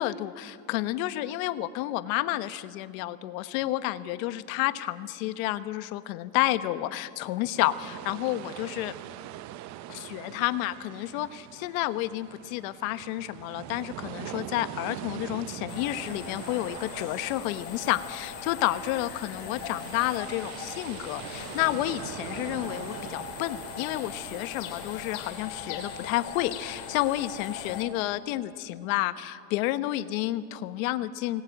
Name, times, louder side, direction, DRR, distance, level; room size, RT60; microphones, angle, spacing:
voice 1, 0.0-9.0 9.9-31.4, left 15 dB, 70° left, 13 dB, 1.2 m, -30 dB
sound 1, 7.5-26.0, right 13 dB, 40° right, 0.7 m, -43 dB
sound 2, 15.7-27.8, left 7 dB, 50° left, 3.7 m, -40 dB
24.5 x 20.0 x 9.2 m, 2.3 s
supercardioid pair, 150°, 42 cm